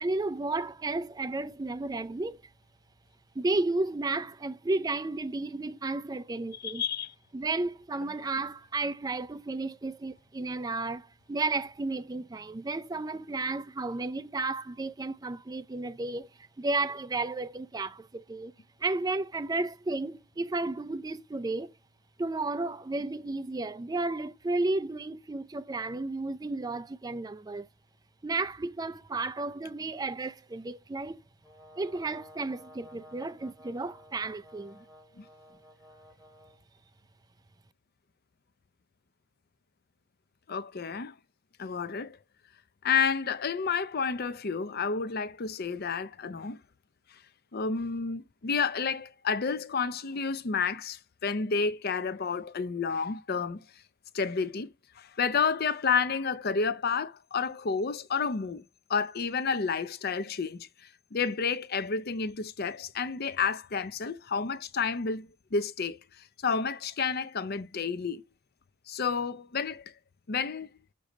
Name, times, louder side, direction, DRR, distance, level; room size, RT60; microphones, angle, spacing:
voice 1, 0.0-2.4 3.4-6.8 7.3-16.3 16.6-18.5 18.8-21.8 22.2-27.7 28.2-31.2 31.8-34.8, right 3 dB, 20° right, 0.4 m, -33 dB
voice 2, 6.6-7.1 35.2-35.3 40.5-41.2 41.6-42.2 42.8-46.6 47.1-47.2 47.5-53.7 54.1-58.6 58.9-68.2 68.9-69.9 70.3-70.7, left 5 dB, 50° left, 0.6 m, -30 dB
Brass instrument, 31.4-36.6, equal, ahead, 3.7 m, -54 dB
6.6 x 6.3 x 5.1 m
head